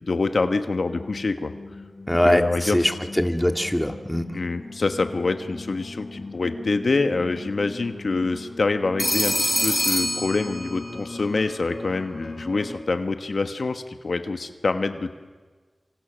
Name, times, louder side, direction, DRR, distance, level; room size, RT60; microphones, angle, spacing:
voice 1, 0.0-1.5 2.2-2.8 4.3-15.1, left 3 dB, 75° left, 8 dB, 1.3 m, -26 dB
sound 1, 0.9-12.8, left 2 dB, 40° left, 1.7 m, -39 dB
voice 2, 2.1-4.3, equal, 10° left, 5 dB, 2.0 m, -22 dB
Telephone, 9.0-11.1, equal, 10° right, 4.4 m, -25 dB
27.0 x 25.5 x 6.3 m, 1.4 s
cardioid pair, 45°, 0 cm